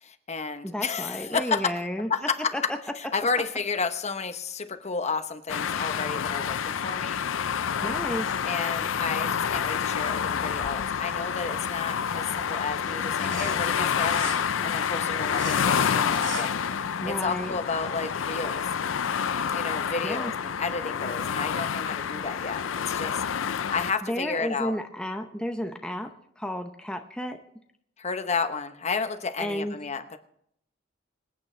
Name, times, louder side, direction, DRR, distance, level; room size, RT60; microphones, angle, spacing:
voice 1, 0.0-1.7 2.1-2.3 3.0-7.2 8.4-18.7 19.5-23.2 23.7-24.7 28.0-30.2, left 4 dB, 35° left, 8 dB, 0.9 m, -32 dB
voice 2, 0.6-2.1 2.5-2.6 7.8-8.4 17.0-17.6 20.0-20.3 24.0-27.4 29.4-29.8, equal, 5° left, 4 dB, 0.7 m, -32 dB
sound 1, 5.5-23.9, left 7 dB, 85° left, 0.5 m, -28 dB
sound 2, 11.8-18.3, right 3 dB, 80° right, 5.5 m, -43 dB
26.0 x 9.0 x 3.3 m, 0.74 s
head